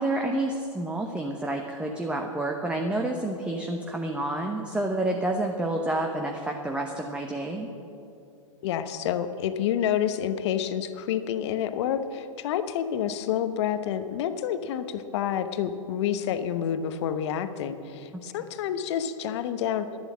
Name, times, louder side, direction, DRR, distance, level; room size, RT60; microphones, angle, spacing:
voice 1, 0.0-7.7, right 1 dB, 5° right, 2 dB, 0.9 m, -29 dB
voice 2, 8.6-19.9, left 9 dB, 55° left, 10 dB, 1.0 m, -28 dB
11.5 x 11.0 x 7.4 m, 2.6 s
hypercardioid pair, 110°, 18 cm